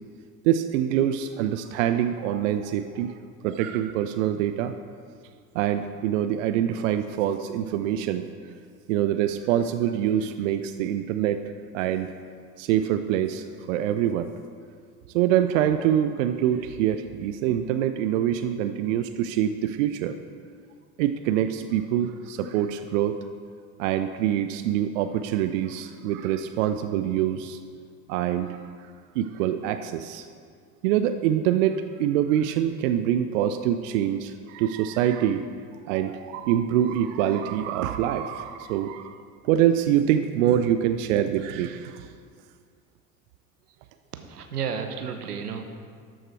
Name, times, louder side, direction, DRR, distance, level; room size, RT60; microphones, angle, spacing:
voice 1, 0.4-3.1 3.4-4.8 5.5-8.3 8.9-11.4 11.7-12.1 12.6-14.3 15.1-20.2 21.0-23.2 23.8-27.6 28.1-28.6 29.1-30.3 30.8-35.4 35.9-39.2 39.4-42.1, right 10 dB, 55° right, 9 dB, 0.5 m, -25 dB
voice 2, 44.3-45.8, right 6 dB, 80° right, 6 dB, 0.9 m, -32 dB
12.5 x 6.4 x 4.5 m, 2.1 s
figure-of-eight pair, 70°, 46 cm